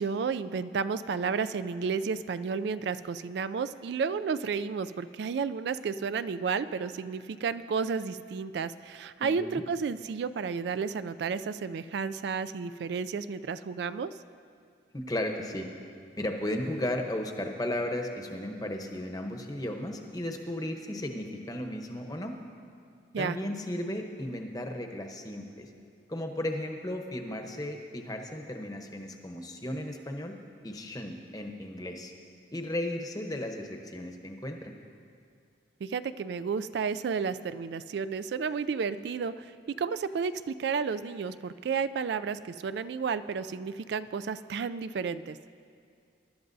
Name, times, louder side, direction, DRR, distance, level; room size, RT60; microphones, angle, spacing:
voice 1, 0.0-14.1 23.1-23.4 35.8-39.5 39.8-45.4, right 5 dB, 65° right, 14 dB, 0.3 m, -32 dB
voice 2, 9.2-9.6 14.9-15.7 16.2-22.3 23.2-25.7 26.1-30.4 30.6-32.1 32.5-34.7, left 1 dB, 20° left, 4 dB, 0.8 m, -35 dB
23.0 x 12.0 x 2.7 m, 2.4 s
head